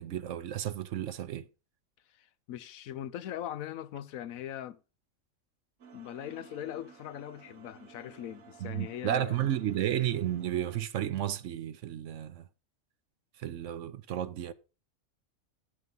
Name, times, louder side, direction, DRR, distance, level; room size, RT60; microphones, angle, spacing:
voice 1, 0.0-1.5 8.6-12.5 13.4-14.5, right 11 dB, 70° right, 1.0 m, -32 dB
voice 2, 2.5-4.8 5.9-9.6, left 11 dB, 85° left, 1.1 m, -40 dB
sound 1, 5.8-10.8, right 6 dB, 85° right, 1.7 m, -55 dB
11.0 x 6.6 x 5.3 m
omnidirectional pair, 1.4 m